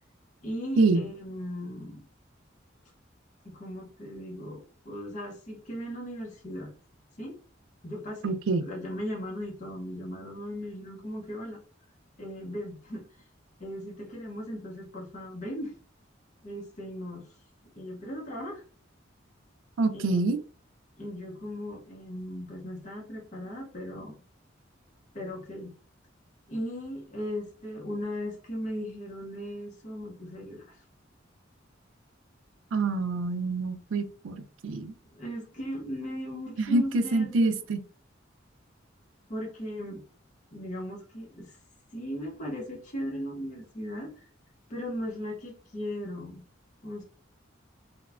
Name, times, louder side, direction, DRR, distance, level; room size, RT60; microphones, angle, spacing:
voice 1, 0.4-2.0 3.4-6.7 7.2-7.4 7.8-11.6 12.2-13.0 13.6-15.7 16.4-17.3 17.7-18.6 19.9-20.3 21.0-24.1 25.1-25.7 26.5-30.8 35.1-37.6 39.3-40.0 40.5-41.6 41.9-44.3 44.7-46.4 46.8-47.0, equal, 40° left, -2 dB, 0.7 m, -37 dB
voice 2, 8.2-8.6 19.8-20.4 32.7-34.4 34.6-34.9 36.6-37.8, right 3 dB, 80° right, 9 dB, 0.4 m, -26 dB
2.9 x 2.1 x 2.4 m, 0.39 s
head